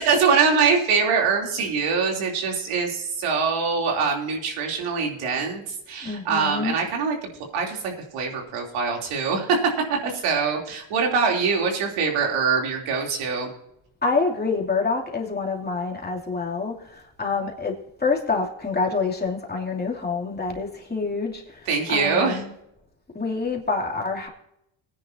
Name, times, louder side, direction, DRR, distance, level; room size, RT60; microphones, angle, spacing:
voice 1, 0.0-7.2 7.5-9.7 10.0-13.5 21.7-22.4, right 5 dB, 90° right, 1 dB, 3.3 m, -23 dB
voice 2, 6.0-6.8 14.0-22.5 23.1-24.3, left 4 dB, 20° left, -1 dB, 2.8 m, -27 dB
19.0 x 10.0 x 2.8 m, 0.79 s
cardioid pair, 90°, 49 cm